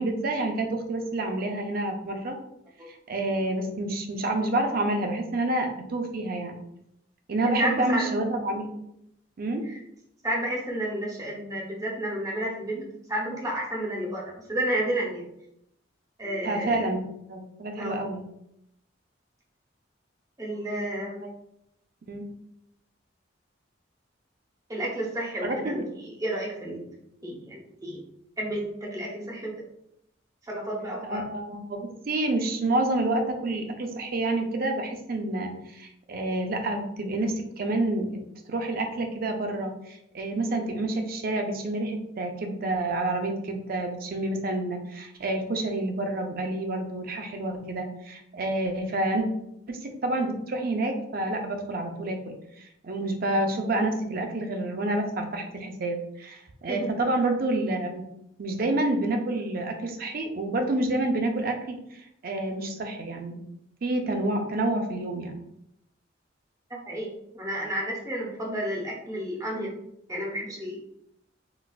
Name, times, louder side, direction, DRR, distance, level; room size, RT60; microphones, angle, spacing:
voice 1, 0.0-2.4 2.9-6.6 7.3-8.7 9.4-9.6 16.4-17.0 17.3-18.2 21.2-21.3 22.1-22.2 25.4-25.8 31.0-38.2 38.5-49.3 49.7-58.0 58.4-63.4 63.8-65.4, right 2 dB, 50° right, 4 dB, 0.5 m, -28 dB
voice 2, 7.4-8.1 9.7-9.8 10.2-15.2 16.2-16.8 17.8-18.0 20.4-21.2 24.7-26.9 27.2-28.0 28.4-29.5 30.4-31.2 56.7-56.9 66.7-67.1 67.3-69.8 70.1-70.8, right 1 dB, 20° right, -2 dB, 0.7 m, -31 dB
4.0 x 2.3 x 2.3 m, 0.79 s
head